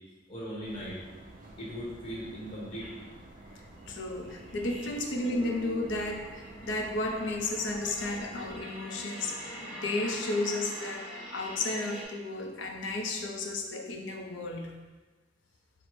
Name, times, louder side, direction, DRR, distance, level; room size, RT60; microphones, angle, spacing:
voice 1, 0.3-1.0 1.6-2.9, equal, 30° left, -6 dB, 1.0 m, -38 dB
sound 1, 0.6-8.6, right 1 dB, 45° right, 0.5 m, -50 dB
sound 2, 2.8-2.9 3.4-12.0, left 2 dB, ahead, 1.1 m, -43 dB
voice 2, 3.9-14.7, left 2 dB, 80° left, 2 dB, 0.5 m, -33 dB
4.2 x 2.1 x 4.5 m, 1.3 s
head